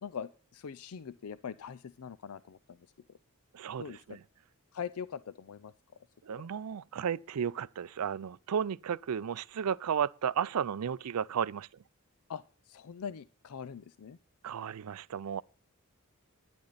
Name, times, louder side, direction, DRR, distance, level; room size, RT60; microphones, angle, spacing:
voice 1, 0.0-2.8 3.8-4.2 4.7-5.7 6.3-6.5 12.3-14.2, left 7 dB, 75° left, 0.5 m, -42 dB
voice 2, 3.5-4.2 6.2-11.7 14.4-15.4, right 8 dB, 85° right, 0.4 m, -33 dB
11.5 x 10.0 x 4.0 m
head